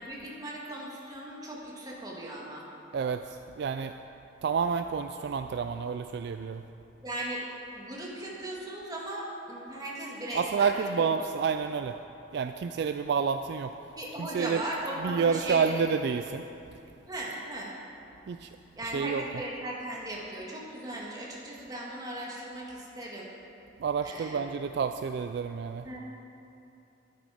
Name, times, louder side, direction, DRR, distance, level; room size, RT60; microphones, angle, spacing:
voice 1, 0.0-2.7 7.0-7.4 7.7-11.2 13.9-15.8 17.1-17.7 18.7-23.3 24.0-24.5 25.8-26.0, right 1 dB, 20° right, -4 dB, 1.9 m, -37 dB
voice 2, 2.9-3.9 4.4-6.6 10.3-12.0 12.3-13.7 14.2-14.6 15.0-16.4 18.3-18.5 18.9-19.2 23.8-25.9, right 6 dB, 55° right, 8 dB, 0.3 m, -29 dB
12.0 x 9.2 x 5.1 m, 2.8 s
head